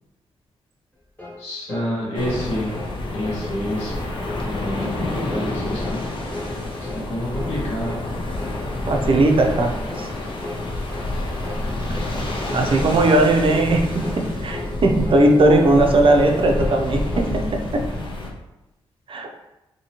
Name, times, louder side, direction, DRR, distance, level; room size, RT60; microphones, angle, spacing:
sound 1, 1.2-1.4 1.7-1.9 2.2-2.4 2.7-2.9 3.2-3.5 3.7-4.0 4.3-4.5 4.8-5.0 5.3-5.5 5.8-6.0 6.3-6.5 6.8-7.0 7.3-7.6 7.8-8.1 8.4-8.6 8.9-9.1 9.4-9.6 9.9-10.1 10.4-10.6 10.9-11.1 11.4-11.7 11.9-12.2 12.5-12.7 13.0-13.2 13.5-13.7 14.0-14.2 14.5-14.8 15.0-15.2 15.5-15.8 16.0-16.3 16.6-17.3, left 1 dB, 15° left, 1.2 m, -35 dB
voice 1, 1.4-2.7 3.1-4.0 4.4-6.0 6.9-8.0, left 1 dB, 80° left, -6 dB, 1.2 m, -28 dB
sound 2, 2.1-18.3, left 2 dB, 50° left, 0.6 m, -28 dB
voice 2, 8.9-10.1 12.5-14.1 14.4-17.8 19.1-19.3, right 2 dB, 55° right, 2 dB, 0.5 m, -18 dB
2.8 x 2.7 x 2.8 m, 0.94 s
cardioid pair, 70°, 11 cm